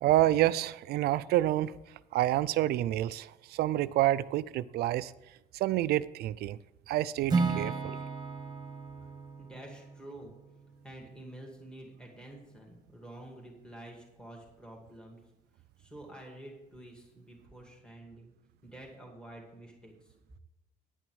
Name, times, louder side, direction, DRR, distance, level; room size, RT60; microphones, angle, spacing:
voice 1, 0.0-1.7 2.1-5.1 5.5-6.6 6.9-8.0, right 14 dB, 70° right, 0.4 m, -28 dB
Acoustic guitar / Strum, 7.3-11.3, right 4 dB, 25° right, 1.3 m, -34 dB
voice 2, 9.4-10.3 10.8-15.2 15.8-18.3 18.6-20.1, right 1 dB, 5° left, 2.3 m, -49 dB
9.9 x 6.0 x 6.3 m
cardioid pair, 110°, 17 cm